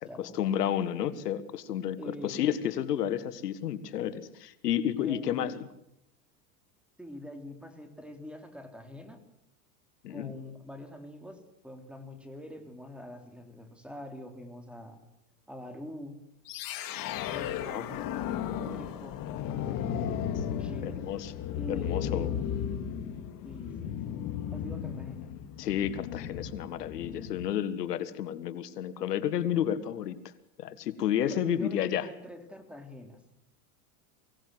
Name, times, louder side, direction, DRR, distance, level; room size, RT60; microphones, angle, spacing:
voice 1, 0.0-5.6 10.0-10.3 17.6-17.9 20.3-20.4 20.8-21.3 21.7-22.3 25.6-30.2 30.6-32.1, left 10 dB, 85° left, 14 dB, 1.6 m, -31 dB
voice 2, 2.0-2.4 5.0-5.5 7.0-9.2 10.1-15.0 15.5-16.2 17.3-19.2 20.6-21.0 21.6-22.4 23.4-25.3 31.3-33.2, left 1 dB, ahead, 6 dB, 3.5 m, -44 dB
sound 1, 16.5-27.6, left 9 dB, 45° left, 2.5 m, -35 dB
23.5 x 17.5 x 7.8 m, 0.82 s
hypercardioid pair, 115°, 46 cm